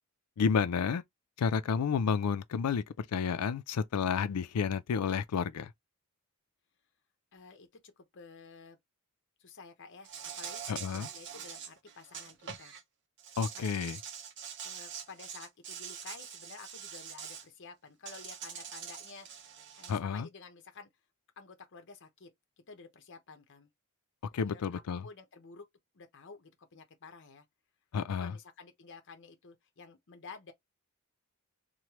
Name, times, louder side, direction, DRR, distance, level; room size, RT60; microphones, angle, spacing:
voice 1, 0.4-1.0 1.4-2.8 3.1-5.7 10.7-11.1 13.4-14.0 19.9-20.3 24.3-25.0 27.9-28.3, left 6 dB, 90° left, 0.4 m, -30 dB
voice 2, 7.3-8.8 9.4-12.8 13.5-13.7 14.6-19.5 19.8-20.9 21.4-22.3 22.6-23.7 24.5-25.6 25.9-27.5 28.0-30.5, left 4 dB, 55° left, 0.8 m, -51 dB
Insect, 10.0-12.8 13.2-17.4 18.0-20.0, right 8 dB, 55° right, 0.6 m, -44 dB
3.1 x 2.1 x 2.9 m
head